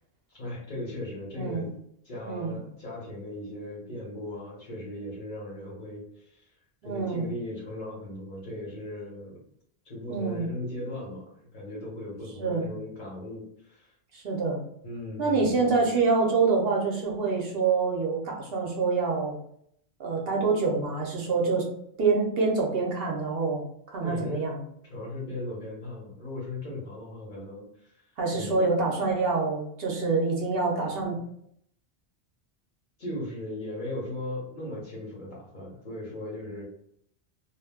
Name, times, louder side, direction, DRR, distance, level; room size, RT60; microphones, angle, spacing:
voice 1, 0.3-1.7 2.0-6.4 6.8-9.4 9.8-13.9 14.8-15.8 24.0-24.5 24.9-28.1 28.3-28.6 33.0-36.6, left 1 dB, 50° left, -4 dB, 1.0 m, -38 dB
voice 2, 1.3-1.7 2.2-2.6 6.8-7.3 10.1-10.5 12.4-12.7 14.1-14.6 15.2-19.4 20.0-21.7 22.0-24.6 28.2-31.2, right 4 dB, 65° right, -1 dB, 0.8 m, -26 dB
2.4 x 2.1 x 3.4 m, 0.70 s
omnidirectional pair, 1.1 m